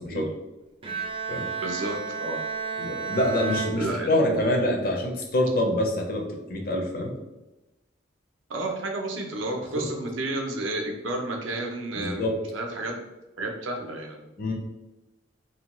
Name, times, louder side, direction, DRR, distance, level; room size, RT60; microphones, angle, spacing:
Bowed string instrument, 0.8-4.6, right 5 dB, 30° right, 0.4 m, -33 dB
voice 1, 1.6-2.4 3.8-4.4 8.5-12.3 12.5-13.0 13.4-14.3, right 2 dB, 80° right, 2 dB, 0.5 m, -31 dB
voice 2, 2.8-7.2 12.0-12.4 14.4-14.5, left 1 dB, 50° left, 1 dB, 0.5 m, -26 dB
2.7 x 2.2 x 2.9 m, 1.0 s
head